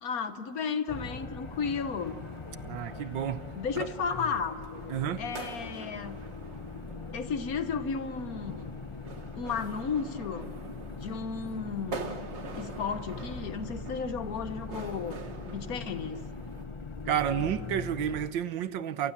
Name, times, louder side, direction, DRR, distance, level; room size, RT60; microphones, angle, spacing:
voice 1, 0.0-2.2 3.5-4.6 5.2-6.2 7.1-8.8 9.3-10.5 10.9-12.2 12.6-15.2 15.5-16.2, left 5 dB, 55° left, 1.5 m, -34 dB
sound 1, 0.9-18.3, left 4 dB, 30° left, 0.5 m, -41 dB
sound 2, 1.5-16.6, right 4 dB, 40° right, 1.5 m, -46 dB
voice 2, 2.6-3.4 3.8-3.9 4.9-5.2 17.1-19.1, right 9 dB, 80° right, 1.7 m, -30 dB
28.5 x 28.5 x 7.4 m
omnidirectional pair, 2.0 m